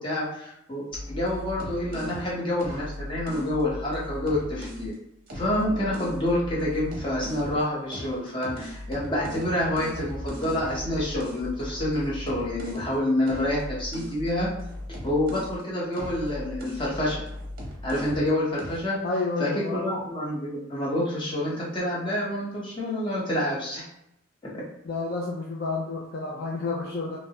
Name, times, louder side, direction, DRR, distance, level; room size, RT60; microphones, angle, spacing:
voice 1, 0.0-4.9 5.3-14.5 15.0-17.2 17.8-19.0 19.4-23.8 24.5-24.6, left 1 dB, 25° left, -6 dB, 0.9 m, -28 dB
sound 1, 0.9-4.9 5.3-7.6 7.9-15.6 15.9-18.3 18.6-18.9, left 1 dB, 45° right, 0.7 m, -38 dB
voice 2, 19.0-20.0 24.8-27.2, left 3 dB, 50° left, -2 dB, 0.4 m, -30 dB
3.2 x 2.1 x 2.8 m, 0.82 s
head